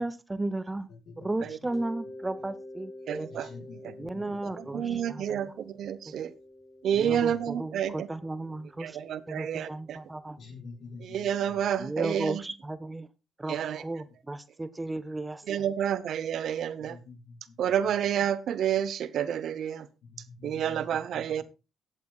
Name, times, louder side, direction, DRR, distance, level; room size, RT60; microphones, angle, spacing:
voice 1, 0.0-0.9 1.2-3.3 4.0-5.4 6.1-6.2 6.9-9.0 9.3-10.4 11.8-13.1 13.4-15.4, right 2 dB, 20° right, 15 dB, 0.7 m, -35 dB
voice 2, 0.9-1.5 3.3-5.1 6.9-7.5 10.4-11.7 16.8-18.1 20.0-21.4, left 4 dB, 65° left, 0 dB, 5.5 m, -48 dB
Mallet percussion, 1.7-10.3, left 1 dB, 20° left, 3.8 m, -48 dB
voice 3, 3.1-3.5 3.8-3.9 4.4-6.3 6.8-8.1 8.8-10.0 11.0-12.4 13.5-13.8 15.5-17.0 17.6-19.9 20.4-21.4, right 9 dB, 65° right, 16 dB, 0.7 m, -29 dB
16.5 x 8.3 x 2.3 m, 0.29 s
supercardioid pair, 60°, 0 cm